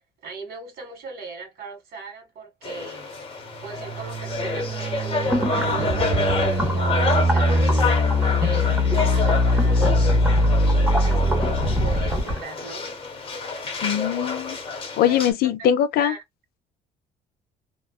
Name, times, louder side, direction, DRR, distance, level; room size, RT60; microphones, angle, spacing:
voice 1, 0.2-3.2 3.6-7.8 8.4-10.4 10.9-12.8 15.0-15.3 15.6-15.7 16.0-16.2, right 4 dB, 65° right, 1.7 m, -39 dB
sound 1, 2.6-15.3, left 4 dB, 30° left, 1.1 m, -28 dB
sound 2, 3.6-12.3, left 1 dB, 35° right, 1.6 m, -22 dB
sound 3, 5.2-12.5, equal, 5° right, 0.6 m, -30 dB
voice 2, 13.8-14.6 15.0-16.1, left 10 dB, 65° left, 0.4 m, -21 dB
2.8 x 2.3 x 2.2 m
cardioid pair, 110°, 17 cm